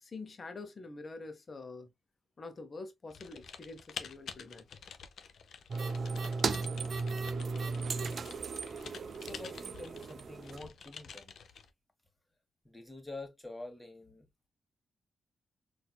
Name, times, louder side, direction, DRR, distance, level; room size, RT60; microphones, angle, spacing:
voice 1, 0.0-1.9 2.4-4.8, left 3 dB, 45° left, 0.9 m, -46 dB
Typing, 3.1-11.7, left 7 dB, 70° left, 0.5 m, -49 dB
voice 2, 5.7-6.3 9.2-11.4 12.6-14.3, left 2 dB, 15° left, 1.4 m, -47 dB
sound 1, 5.7-10.7, right 4 dB, 60° right, 0.4 m, -36 dB
4.2 x 2.6 x 2.2 m
supercardioid pair, 45°, 0 cm